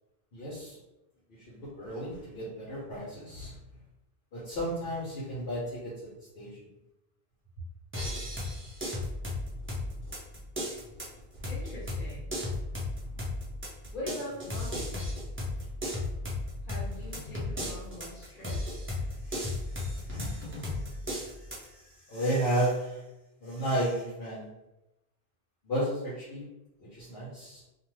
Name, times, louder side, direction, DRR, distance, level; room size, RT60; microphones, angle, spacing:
voice 1, 0.3-0.8 1.4-3.6 4.3-5.9 6.3-6.6 19.2-19.8 20.1-23.0 23.4-24.5 25.6-26.4 26.9-27.6, right 1 dB, 70° left, -8 dB, 1.0 m, -33 dB
sound 1, 7.9-21.7, left 1 dB, 15° right, 0.5 m, -35 dB
voice 2, 11.5-12.3 13.9-15.2 16.6-18.8, left 1 dB, 55° left, -6 dB, 1.2 m, -42 dB
2.5 x 2.2 x 3.0 m, 0.95 s
omnidirectional pair, 1.0 m